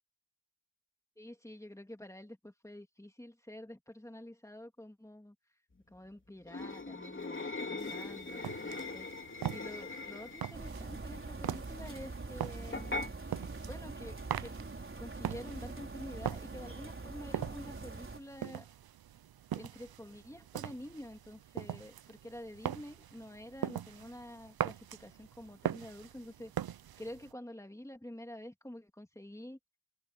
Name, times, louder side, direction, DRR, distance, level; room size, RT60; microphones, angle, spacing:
voice 1, 1.2-5.3 5.9-9.1 9.5-13.0 13.7-14.6 15.0-18.7 19.5-26.5 27.0-29.6, left 1 dB, 10° left, 2.7 m, -48 dB
sound 1, 6.5-10.7 12.7-13.1, left 3 dB, 30° left, 3.4 m, -40 dB
sound 2, 7.8-27.3, right 10 dB, 75° right, 0.6 m, -42 dB
sound 3, 10.5-18.2, right 3 dB, 35° right, 4.4 m, -44 dB
wide cardioid pair, 145°, 38 cm